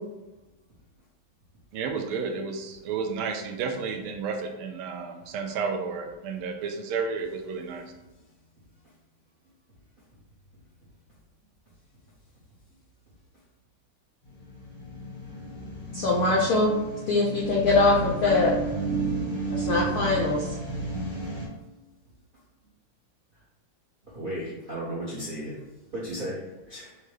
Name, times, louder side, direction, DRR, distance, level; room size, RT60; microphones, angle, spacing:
voice 1, 1.7-7.9, right 5 dB, 85° right, 4 dB, 1.5 m, -32 dB
sound 1, 14.3-21.5, right 3 dB, 35° left, 0.6 m, -32 dB
voice 2, 15.9-16.8 17.1-18.5 19.5-20.5, left 3 dB, 80° left, -2 dB, 0.8 m, -22 dB
voice 3, 24.0-25.6 25.9-27.0, right 1 dB, 60° right, -7 dB, 0.5 m, -35 dB
5.5 x 2.1 x 3.2 m, 1.1 s
omnidirectional pair, 2.3 m